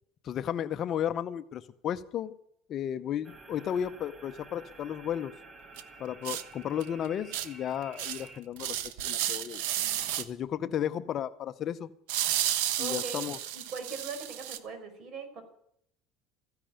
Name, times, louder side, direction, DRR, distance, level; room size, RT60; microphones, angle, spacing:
voice 1, 0.2-2.4 2.7-5.3 6.0-8.8 9.0-9.6 10.2-11.9 12.8-13.4, left 9 dB, 40° left, 11 dB, 0.8 m, -33 dB
sound 1, 3.2-8.4, right 3 dB, 20° right, 1.6 m, -51 dB
sound 2, 5.8-5.9 6.2-6.4 6.8-6.9 7.3-7.5 8.0-8.3 8.6-10.2 12.1-14.6, right 12 dB, 85° right, 1.2 m, -32 dB
voice 2, 12.8-13.3 13.5-15.4, right 5 dB, 45° right, 7 dB, 4.7 m, -40 dB
15.0 x 10.5 x 8.9 m, 0.71 s
cardioid pair, 135°, 0 cm